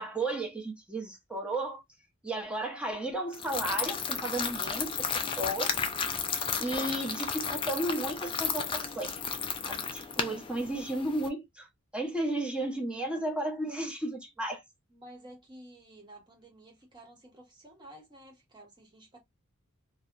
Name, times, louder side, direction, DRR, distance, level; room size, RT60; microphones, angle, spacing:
voice 1, 0.0-1.8 2.2-5.7 6.6-9.1 9.6-11.7 11.9-14.6, right 1 dB, 5° right, 0.7 m, -34 dB
sound 1, 3.3-11.3, left 6 dB, 25° left, 0.3 m, -33 dB
voice 2, 12.9-13.2 14.9-19.2, right 1 dB, 20° right, 1.0 m, -52 dB
2.7 x 2.1 x 2.4 m
head